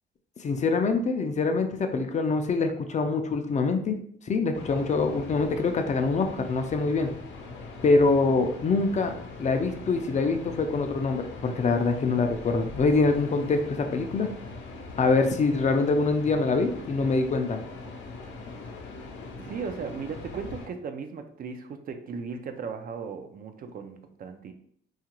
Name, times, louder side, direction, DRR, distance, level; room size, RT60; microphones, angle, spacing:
voice 1, 0.4-4.0 4.3-7.1 7.8-14.3 15.0-17.6, left 3 dB, 35° left, 6 dB, 0.4 m, -24 dB
sound 1, 4.5-20.7, left 3 dB, 70° left, 0.7 m, -41 dB
voice 2, 19.4-24.5, right 5 dB, 45° right, 6 dB, 0.4 m, -37 dB
2.8 x 2.4 x 2.9 m, 0.62 s
cardioid pair, 90°, 20 cm